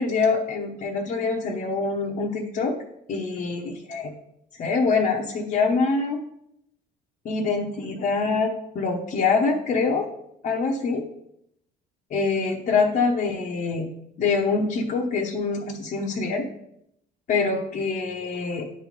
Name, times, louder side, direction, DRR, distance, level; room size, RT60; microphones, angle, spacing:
voice 1, 0.0-2.8 3.1-4.1 4.6-6.2 7.2-10.1 10.4-11.1 12.1-13.9 14.2-16.5 17.3-18.7, left 4 dB, 50° left, -2 dB, 0.9 m, -25 dB
9.4 x 3.3 x 5.2 m, 0.78 s
cardioid pair, 110°, 17 cm